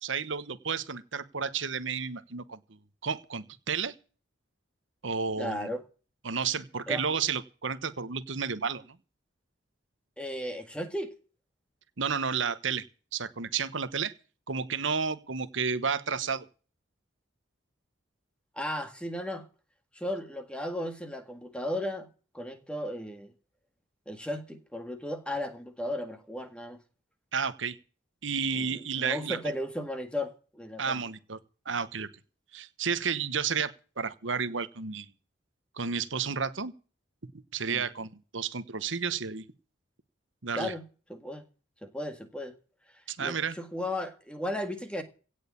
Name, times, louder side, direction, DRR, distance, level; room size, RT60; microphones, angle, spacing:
voice 1, 0.0-2.6 3.0-3.9 5.0-5.7 6.2-8.8 12.0-12.8 13.1-14.1 14.5-16.4 27.3-27.8 28.2-29.4 30.8-31.4 31.6-32.1 32.5-35.1 35.8-36.7 37.5-39.5 40.4-40.7 43.1-43.5, right 6 dB, 80° right, 13 dB, 1.2 m, -31 dB
voice 2, 5.4-5.8 6.9-7.0 10.2-11.1 18.5-19.5 19.9-22.1 22.3-23.3 24.0-26.8 28.5-31.0 37.7-37.9 40.5-40.8 41.1-41.4 41.8-42.5 43.2-45.0, left 1 dB, 5° left, 7 dB, 1.7 m, -35 dB
17.0 x 6.5 x 8.4 m, 0.38 s
head